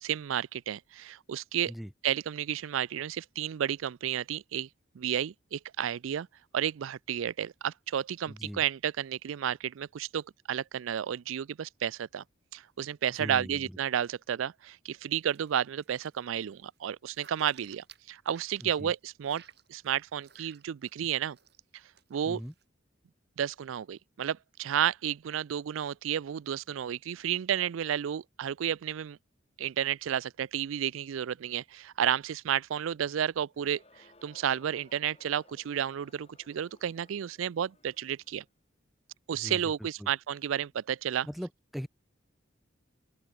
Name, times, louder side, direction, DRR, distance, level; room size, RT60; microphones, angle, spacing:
voice 1, 0.0-1.7 2.0-4.7 5.0-6.3 6.5-12.2 12.5-19.4 19.7-21.4 22.1-22.4 23.4-29.2 29.6-33.8 34.2-38.4 39.3-41.3, right 9 dB, 85° right, 0.4 m, -32 dB
voice 2, 8.3-8.6 13.2-13.8 18.6-18.9 22.2-22.5 39.3-39.6 40.0-40.1 41.3-41.9, equal, ahead, 0.3 m, -40 dB
sound 1, 15.1-15.5 15.8-19.0 19.2-21.0 21.3-21.6 21.9-22.6, right 8 dB, 55° right, 3.4 m, -58 dB
Crowd, 33.5-38.5, left 2 dB, 30° left, 7.8 m, -62 dB
open air
head